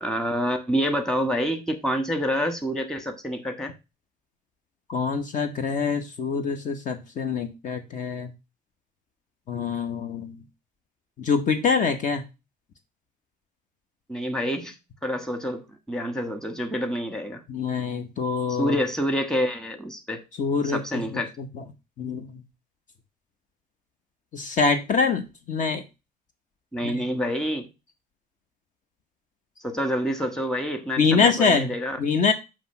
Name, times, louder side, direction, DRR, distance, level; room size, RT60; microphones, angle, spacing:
voice 1, 0.0-3.7 14.1-14.7 15.0-17.4 18.6-20.2 20.6-21.3 26.7-27.7 29.6-32.0, equal, 5° left, 6 dB, 1.4 m, -27 dB
voice 2, 4.9-8.3 9.5-10.3 11.2-12.2 17.5-18.7 20.4-21.0 21.4-21.6 22.0-22.3 24.3-25.8 26.8-27.0 31.0-31.7 32.0-32.3, left 5 dB, 50° left, 8 dB, 1.0 m, -25 dB
7.6 x 3.2 x 5.7 m, 0.26 s
cardioid pair, 110°, 17 cm